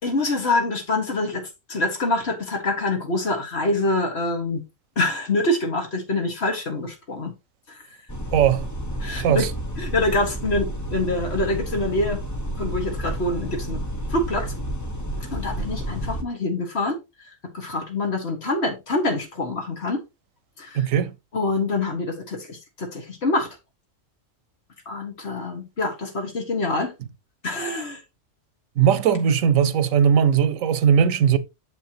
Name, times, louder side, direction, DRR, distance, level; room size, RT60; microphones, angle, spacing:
voice 1, 0.0-4.6 5.0-7.3 7.7-7.8 9.0-9.5 9.8-12.2 12.6-13.8 14.1-14.5 15.3-17.0 17.5-20.0 20.6-20.8 21.3-23.5 24.9-26.9 27.4-28.0, left 2 dB, 55° left, 1.9 m, -25 dB
sound 1, 8.1-16.2, equal, 15° left, 0.9 m, -30 dB
voice 2, 8.3-8.7 9.2-9.5 20.7-21.1 28.8-31.4, right 8 dB, 90° right, 1.1 m, -19 dB
7.5 x 7.1 x 2.9 m
omnidirectional pair, 1.3 m